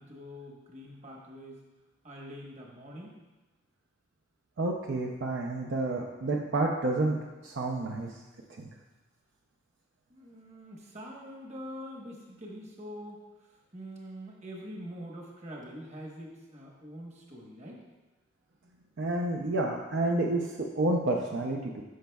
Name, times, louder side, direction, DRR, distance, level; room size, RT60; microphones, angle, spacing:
voice 1, 0.0-1.6 2.0-3.2 10.1-13.2 13.7-17.8, equal, 35° right, -2 dB, 1.1 m, -44 dB
voice 2, 4.6-7.2 7.4-8.1 8.6-8.7 19.0-21.8, right 2 dB, 65° right, 0 dB, 0.5 m, -29 dB
11.5 x 5.2 x 2.3 m, 1.2 s
head